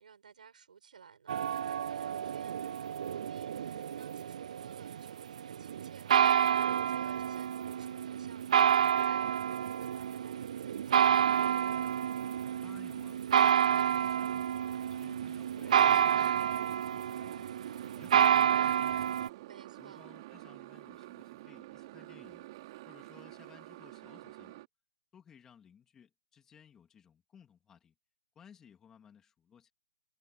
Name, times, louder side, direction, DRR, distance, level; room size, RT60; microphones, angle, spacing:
voice 1, 0.0-11.6 19.5-20.1, right 7 dB, 75° right, 7.2 m, -56 dB
sound 1, 1.3-19.3, right 9 dB, 55° right, 0.4 m, -29 dB
voice 2, 12.6-17.5 17.9-19.3 19.8-22.5 22.9-24.6 25.1-27.9 28.3-29.7, left 8 dB, 10° left, 3.3 m, -59 dB
Motorcycle, 14.9-24.7, right 18 dB, 35° right, 3.9 m, -49 dB
hypercardioid pair, 160°, 4 cm